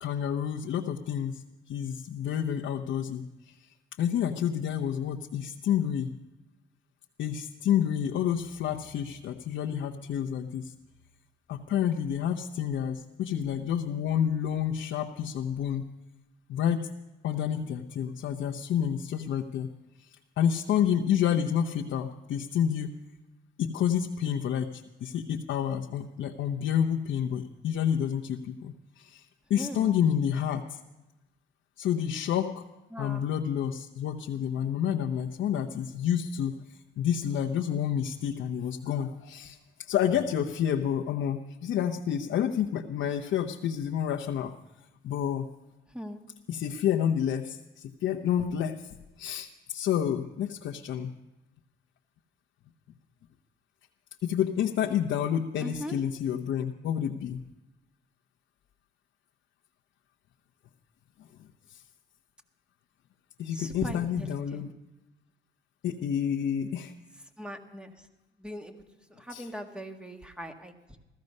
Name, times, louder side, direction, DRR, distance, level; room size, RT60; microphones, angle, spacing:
voice 1, 0.0-3.7 4.0-6.1 7.2-10.7 11.5-15.8 16.5-16.9 17.2-19.7 20.0-20.1 20.4-23.0 23.6-30.8 31.8-32.6 33.0-39.6 39.9-44.5 45.0-45.5 46.5-48.8 49.2-51.1 54.2-57.4 61.7-61.8 63.4-64.7 65.8-66.9 69.3-69.5, left 9 dB, 70° left, 2 dB, 0.9 m, -29 dB
voice 2, 29.6-30.0 32.9-33.2 45.9-46.2 55.6-56.0 63.5-64.7 67.4-67.9 68.4-68.7 69.1-71.0, equal, 5° right, 5 dB, 1.7 m, -40 dB
16.5 x 14.0 x 5.4 m, 1.0 s
cardioid pair, 90°, 20 cm